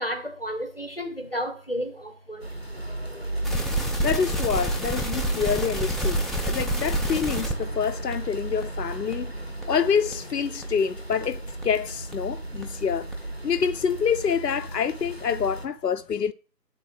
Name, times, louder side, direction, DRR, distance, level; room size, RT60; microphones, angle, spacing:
voice 1, 0.0-2.5 6.4-6.5, equal, 35° left, 0.7 m, -32 dB
sound 1, 2.4-15.7, right 2 dB, 40° right, 0.6 m, -35 dB
sound 2, 3.4-7.6 8.1-8.2 8.6-8.7 9.1-9.2 9.6-9.7 10.1-10.2 10.6-10.7 11.1-11.2 11.6-11.7 12.1-12.2 12.6-12.7 13.1-13.2 13.6-13.7, right 1 dB, ahead, 0.5 m, -28 dB
voice 2, 4.0-9.3 9.7-13.1 13.4-16.3, left 7 dB, 75° left, 0.5 m, -27 dB
9.3 x 3.7 x 3.2 m
figure-of-eight pair, 165°, 49 cm